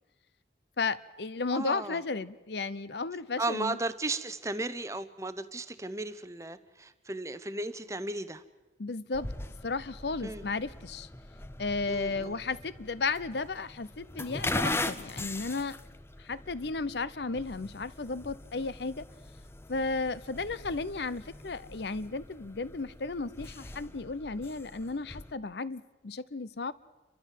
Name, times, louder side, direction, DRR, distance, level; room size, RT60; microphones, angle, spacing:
voice 1, 0.8-3.8 8.8-9.3 9.6-11.1 11.6-15.8 16.2-19.1 19.7-26.7, left 3 dB, 70° left, 17 dB, 0.7 m, -34 dB
voice 2, 1.5-2.0 3.4-8.4 10.2-10.4 11.9-12.4, right 2 dB, 15° right, 13 dB, 0.8 m, -35 dB
sound 1, 9.1-25.3, left 2 dB, 15° left, 0.6 m, -40 dB
30.0 x 13.0 x 7.5 m, 1.2 s
head